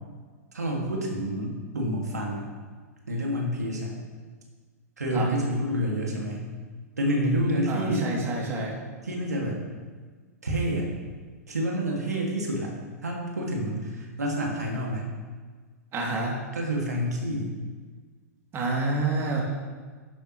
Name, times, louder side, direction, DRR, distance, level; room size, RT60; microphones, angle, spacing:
voice 1, 0.5-2.5 3.1-4.0 5.0-6.5 7.0-8.1 9.0-9.6 10.4-10.9 11.5-12.7 13.0-15.1 16.5-17.6, equal, 85° right, -1 dB, 2.0 m, -28 dB
voice 2, 7.7-8.7 15.9-16.4 18.5-19.4, right 3 dB, 30° right, -2 dB, 2.5 m, -28 dB
11.5 x 8.9 x 3.0 m, 1.5 s
hypercardioid pair, 105°, 9 cm